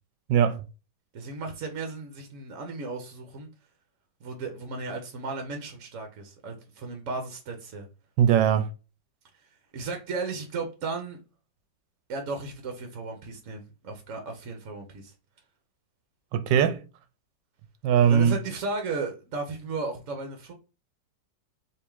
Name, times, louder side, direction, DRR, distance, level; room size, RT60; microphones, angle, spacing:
voice 1, 0.3-0.6 8.2-8.7 16.3-16.8 17.8-18.4, right 9 dB, 80° right, 1.3 m, -20 dB
voice 2, 1.1-3.5 4.2-7.9 9.7-11.2 12.1-15.1 18.0-20.5, right 3 dB, 55° right, 0.9 m, -35 dB
3.6 x 3.0 x 4.6 m
omnidirectional pair, 2.0 m